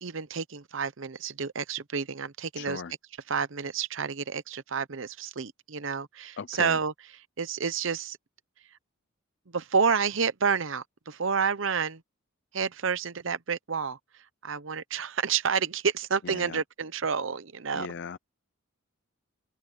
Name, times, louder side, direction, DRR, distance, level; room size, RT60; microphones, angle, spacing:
voice 1, 0.0-2.8 3.3-6.9 7.4-8.2 9.5-12.0 12.5-14.0 14.4-17.9, right 6 dB, 60° right, 0.8 m, -29 dB
voice 2, 2.6-2.9 6.4-6.8 16.2-16.6 17.7-18.2, left 5 dB, 55° left, 0.5 m, -37 dB
head